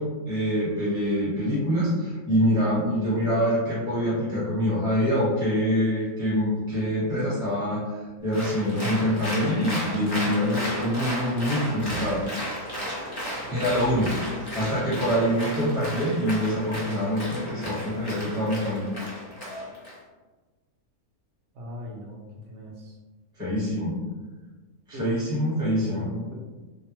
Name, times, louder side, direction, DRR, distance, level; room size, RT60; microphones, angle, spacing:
voice 1, 0.0-12.2 13.5-18.9 23.4-23.9 24.9-26.1, equal, 5° right, -9 dB, 0.9 m, -25 dB
Applause, 8.3-19.9, equal, 30° left, 0.4 m, -34 dB
voice 2, 21.5-23.0 24.9-25.2 25.8-26.3, equal, 60° right, -1 dB, 0.8 m, -38 dB
2.6 x 2.2 x 2.9 m, 1.3 s
omnidirectional pair, 1.5 m